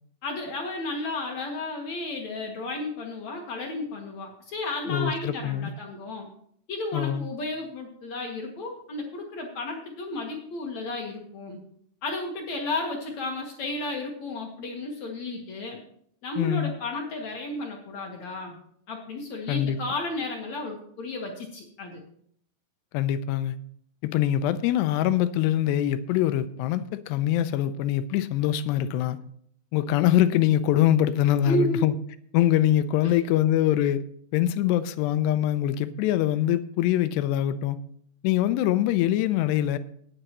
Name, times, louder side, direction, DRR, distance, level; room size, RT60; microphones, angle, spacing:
voice 1, 0.2-6.3 6.7-11.6 12.0-15.8 16.2-18.6 18.9-22.0 31.4-31.9 33.0-33.1, left 2 dB, 60° left, 1 dB, 2.0 m, -33 dB
voice 2, 4.9-5.7 6.9-7.3 16.4-16.7 19.5-19.8 22.9-23.6 24.0-29.2 29.7-31.9 32.3-34.0 34.3-37.8 38.2-39.8, left 12 dB, 85° left, 12 dB, 2.7 m, -23 dB
18.5 x 7.8 x 3.0 m, 0.65 s
omnidirectional pair, 4.9 m